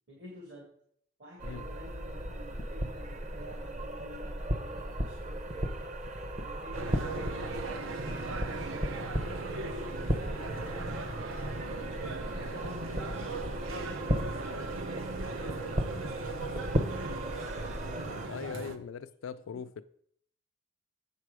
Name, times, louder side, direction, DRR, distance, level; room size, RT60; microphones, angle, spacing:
voice 1, 0.1-0.7 1.2-6.0 6.4-11.1 11.6-13.3 13.7-18.8 19.2-19.7, equal, 65° right, 2.0 m, -50 dB
sound 1, 1.4-18.3, right 1 dB, 35° right, 0.7 m, -36 dB
sound 2, 6.7-18.8, right 3 dB, 90° right, 0.8 m, -39 dB
voice 2, 18.3-19.8, left 7 dB, 80° left, 0.3 m, -40 dB
7.7 x 6.7 x 4.7 m
head